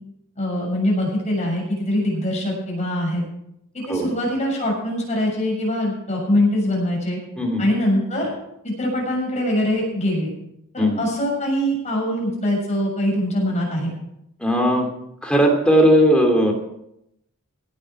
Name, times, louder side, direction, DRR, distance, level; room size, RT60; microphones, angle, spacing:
voice 1, 0.3-3.2 3.7-7.2 7.6-8.3 8.6-10.3 10.7-13.9, left 1 dB, 30° left, -2 dB, 6.8 m, -23 dB
voice 2, 14.4-14.9 15.2-16.5, equal, 5° left, 1 dB, 2.9 m, -17 dB
17.5 x 10.0 x 4.9 m, 0.80 s
head